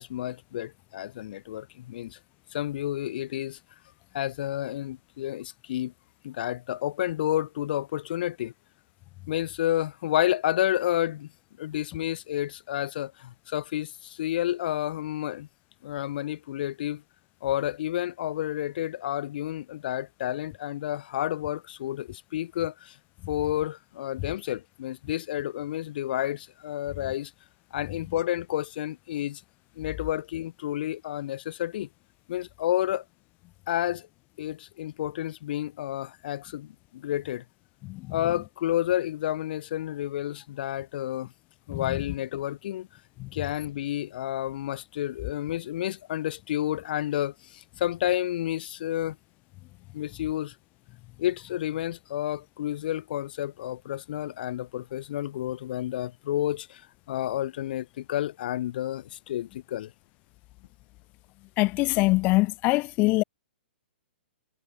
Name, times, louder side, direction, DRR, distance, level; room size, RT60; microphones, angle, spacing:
voice 1, 0.0-2.2 2.5-3.6 4.1-5.9 6.2-8.5 9.3-11.3 11.6-15.5 15.8-17.0 17.4-23.0 23.3-27.3 27.7-29.4 29.8-31.9 32.3-33.0 33.7-34.1 34.4-37.4 38.1-41.3 41.7-42.9 43.3-49.2 49.9-50.5 51.2-56.8 57.1-59.9, left 12 dB, 55° left, 1.8 m, -30 dB
voice 2, 61.6-63.2, left 22 dB, 30° left, 0.7 m, -23 dB
hypercardioid pair, 150°, 6 cm